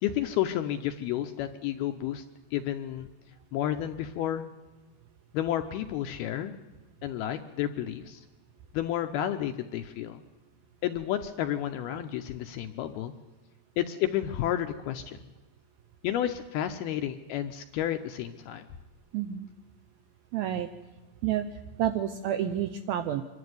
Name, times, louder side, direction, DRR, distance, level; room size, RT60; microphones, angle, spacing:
voice 1, 0.0-2.2 2.5-3.1 3.5-4.4 5.3-6.6 7.0-8.2 8.7-10.2 10.8-13.1 13.8-15.2 16.0-18.7, left 11 dB, 80° left, 7 dB, 2.4 m, -31 dB
voice 2, 19.1-19.5 20.3-20.7 21.2-23.2, right 10 dB, 80° right, 8 dB, 2.2 m, -29 dB
25.5 x 12.0 x 9.5 m, 1.2 s
omnidirectional pair, 5.2 m